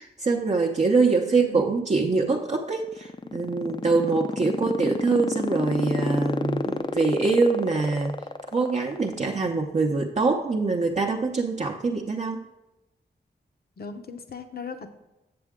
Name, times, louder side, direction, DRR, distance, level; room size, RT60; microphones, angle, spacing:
voice 1, 0.0-8.2 8.5-12.4, right 4 dB, 40° right, 0 dB, 0.6 m, -24 dB
voice 2, 1.2-1.6 13.8-14.9, left 4 dB, 60° left, 8 dB, 0.7 m, -39 dB
sound 1, 2.8-9.4, left 4 dB, 25° left, 0.4 m, -28 dB
7.7 x 7.2 x 3.6 m, 0.98 s
wide cardioid pair, 80°, 18 cm